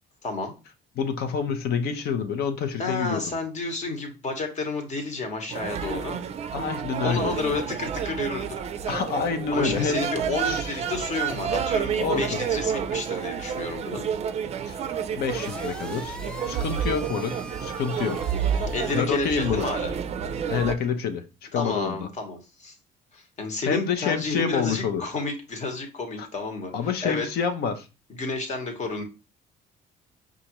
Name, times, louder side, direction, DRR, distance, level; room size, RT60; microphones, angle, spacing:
voice 1, 0.2-0.5 2.8-6.2 7.0-8.5 9.5-14.1 18.7-19.9 21.5-22.7 23.1-26.7 27.0-27.3 28.1-29.0, left 3 dB, 45° left, 5 dB, 1.1 m, -31 dB
voice 2, 1.0-3.3 6.5-7.4 8.9-10.0 10.4-10.8 12.0-12.5 14.6-14.8 15.1-16.2 16.5-18.2 18.9-19.7 20.5-22.1 23.6-25.0 26.2-26.3 26.7-27.9, left 6 dB, 70° left, 8 dB, 0.7 m, -28 dB
sound 1, 5.5-20.7, right 7 dB, 40° right, 0.4 m, -30 dB
sound 2, 15.2-19.0, equal, 5° left, 0.6 m, -41 dB
5.2 x 2.5 x 2.9 m, 0.29 s
cardioid pair, 110°, 17 cm